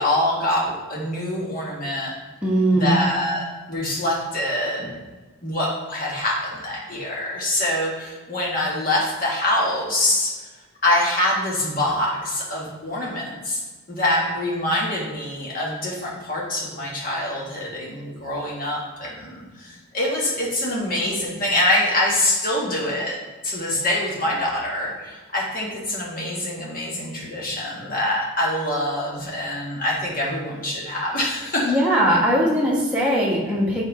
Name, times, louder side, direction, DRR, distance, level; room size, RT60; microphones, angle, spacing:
voice 1, 0.0-2.1 2.7-4.9 5.4-10.3 10.8-13.6 13.9-23.2 23.4-31.7, left 1 dB, 40° left, -4 dB, 1.6 m, -25 dB
voice 2, 2.4-3.0 31.6-33.8, right 1 dB, 5° right, -6 dB, 1.2 m, -20 dB
6.0 x 4.3 x 4.9 m, 1.3 s
head